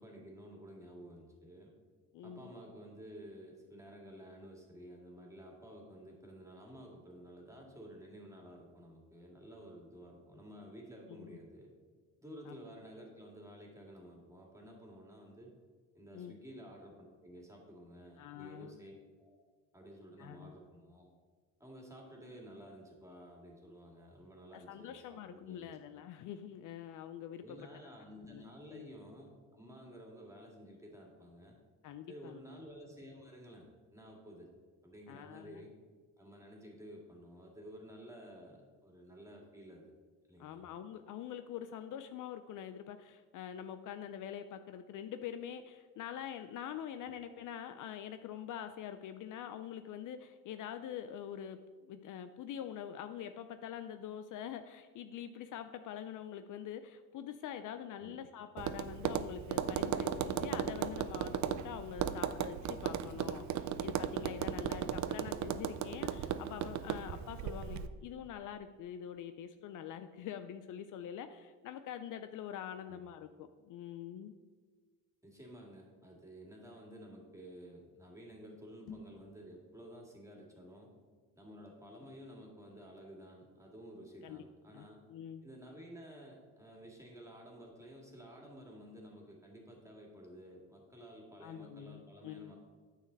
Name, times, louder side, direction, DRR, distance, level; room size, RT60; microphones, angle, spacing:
voice 1, 0.0-1.7 2.2-11.7 12.2-15.5 15.9-19.4 19.7-21.1 21.6-25.8 27.4-31.6 32.1-34.5 34.8-35.7 36.2-39.9 40.3-40.6 47.0-47.1 58.0-58.2 64.8-65.0 72.8-73.0 75.2-80.9 81.4-85.0 85.4-92.6, equal, 10° right, -1 dB, 2.2 m, -52 dB
voice 2, 2.1-2.5 11.1-11.4 12.5-12.6 16.1-16.3 18.2-18.7 20.2-20.6 24.5-27.4 28.3-28.4 28.7-28.9 31.8-32.4 35.1-35.6 40.4-74.3 84.2-85.5 91.4-92.5, left 9 dB, 60° left, 9 dB, 0.5 m, -45 dB
Tap, 58.6-67.9, right 9 dB, 50° right, 0.5 m, -36 dB
sound 1, 78.8-79.3, left 4 dB, 75° left, 1.5 m, -49 dB
9.2 x 6.6 x 4.0 m, 1.5 s
supercardioid pair, 90°, 37 cm